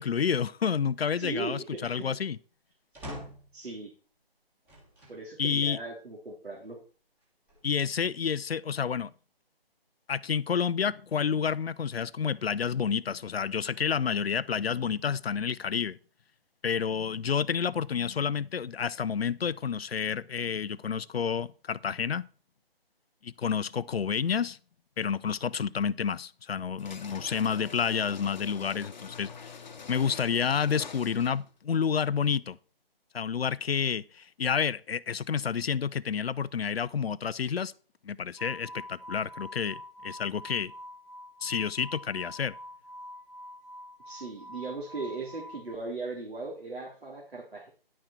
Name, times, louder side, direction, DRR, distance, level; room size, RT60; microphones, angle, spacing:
voice 1, 0.0-2.4 5.4-5.8 7.6-9.1 10.1-16.0 16.6-22.3 23.2-24.6 25.0-29.6 29.9-32.6 33.1-37.7 38.0-40.7 41.4-42.5, left 7 dB, 80° left, 0.6 m, -29 dB
voice 2, 1.2-2.2 3.5-3.9 5.1-6.8 44.1-47.7, right 3 dB, 85° right, 3.4 m, -38 dB
sound 1, 2.9-3.6 4.7-5.2 5.9-6.0 7.2-8.0, equal, 5° right, 1.6 m, -44 dB
sound 2, 26.8-31.5, left 5 dB, 45° left, 1.0 m, -45 dB
sound 3, 38.4-45.7, left 1 dB, 50° right, 2.5 m, -46 dB
10.5 x 6.2 x 4.3 m
figure-of-eight pair, 160°, 30 cm